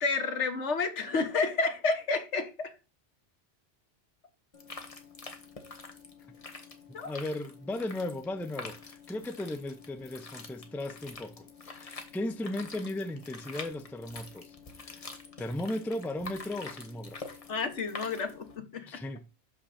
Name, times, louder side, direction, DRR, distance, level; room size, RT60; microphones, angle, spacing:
voice 1, 0.0-2.7 6.9-7.1 17.5-19.0, left 4 dB, 80° left, 1.5 m, -30 dB
sound 1, 4.5-18.6, left 4 dB, 30° left, 1.1 m, -46 dB
voice 2, 6.9-15.1 15.4-17.2 18.9-19.3, left 1 dB, ahead, 0.4 m, -36 dB
6.2 x 5.8 x 4.1 m
omnidirectional pair, 1.2 m